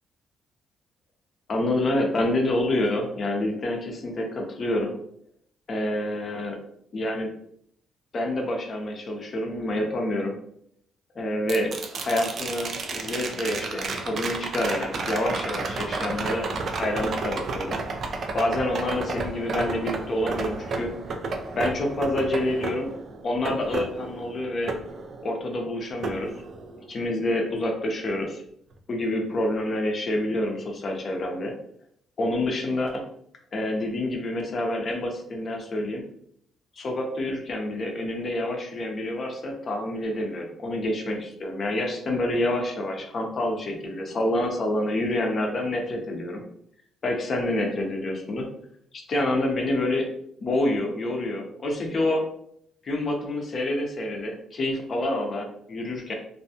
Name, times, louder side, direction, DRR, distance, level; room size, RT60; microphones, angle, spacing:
voice 1, 1.5-4.9 5.7-6.6 6.9-7.3 8.1-10.3 11.1-16.5 16.8-17.8 18.3-20.9 21.5-22.9 23.2-24.7 25.2-26.3 26.9-28.4 28.9-31.5 32.2-33.0 33.5-36.0 36.8-46.4 47.0-48.5 48.9-50.1 50.4-52.3 52.8-56.1, left 1 dB, 45° left, 2 dB, 0.6 m, -27 dB
sound 1, 11.5-25.6 26.0-27.1 29.3-29.4, right 3 dB, 55° right, 0.4 m, -32 dB
2.6 x 2.2 x 2.7 m, 0.70 s
cardioid pair, 90°, 0 cm